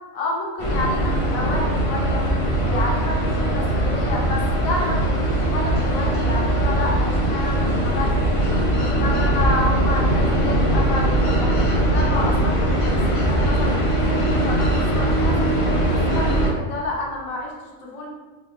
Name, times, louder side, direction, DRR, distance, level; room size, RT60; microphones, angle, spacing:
voice 1, 0.1-2.2 2.6-7.7 7.9-8.1 8.7-13.7 14.1-17.5 17.8-18.1, left 2 dB, 80° left, -2 dB, 1.2 m, -29 dB
sound 1, 0.6-16.5, right 1 dB, 55° left, 0.3 m, -20 dB
3.9 x 2.5 x 3.0 m, 1.3 s
omnidirectional pair, 1.4 m